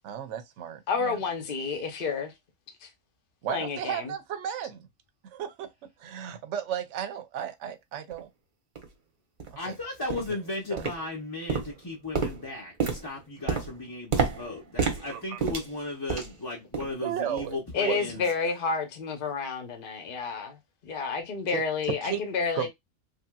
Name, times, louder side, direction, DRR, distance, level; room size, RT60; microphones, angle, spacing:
voice 1, 0.0-1.2 3.4-4.9 5.3-5.7 6.0-8.3 9.7-9.8 10.7-10.9 15.1-15.4 17.0-17.6 17.8-18.0 21.5-21.6 21.9-22.2 22.5-22.7, right 9 dB, 70° right, 0.9 m, -34 dB
voice 2, 0.9-2.3 2.8-2.9 3.5-4.1 17.7-22.7, left 5 dB, 50° left, 0.9 m, -30 dB
sound 1, 8.1-8.2 8.8-8.9 9.4-9.6 10.1-10.4 10.8-11.2 11.5-16.4 16.7-17.0 17.4-17.6 18.1-18.2, right 5 dB, 45° right, 0.9 m, -31 dB
voice 3, 9.6-18.2, left 2 dB, 20° left, 0.7 m, -36 dB
3.3 x 2.8 x 2.2 m
omnidirectional pair, 1.3 m